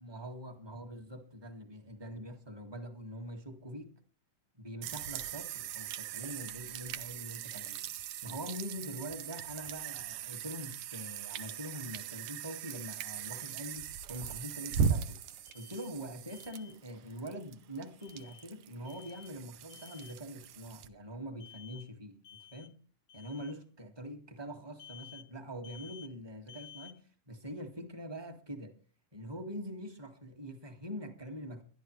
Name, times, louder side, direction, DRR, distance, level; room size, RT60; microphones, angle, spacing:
voice 1, 0.0-3.9 4.6-7.8 8.2-15.2 15.5-22.8 23.1-28.7 29.1-31.6, equal, 20° right, 0.7 m, -44 dB
sound 1, 4.8-20.9, right 7 dB, 75° right, 2.1 m, -39 dB
Alarm, 15.4-15.9 16.3-16.7 18.0-18.5 18.8-19.3 19.7-20.2 21.4-21.9 22.2-22.7 23.1-23.5 24.8-25.3 25.6-26.1 26.5-27.0, left 9 dB, 75° left, 1.5 m, -53 dB
23.5 x 11.0 x 3.2 m
omnidirectional pair, 3.8 m